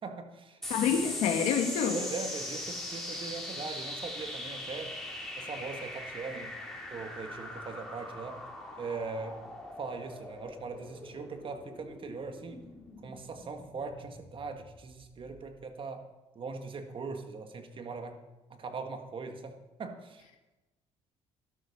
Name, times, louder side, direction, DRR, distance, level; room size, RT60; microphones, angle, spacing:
voice 1, 0.0-1.0 1.9-4.9 5.4-6.5 6.9-8.4 8.8-9.4 9.8-12.6 13.0-16.1 16.4-18.2 18.5-20.4, right 4 dB, 45° right, 6 dB, 1.9 m, -40 dB
sound 1, 0.6-15.4, left 1 dB, ahead, 3.8 m, -41 dB
voice 2, 0.7-2.0, left 7 dB, 80° left, 4 dB, 1.6 m, -27 dB
12.5 x 12.0 x 5.6 m, 1.1 s
cardioid pair, 95°, 13 cm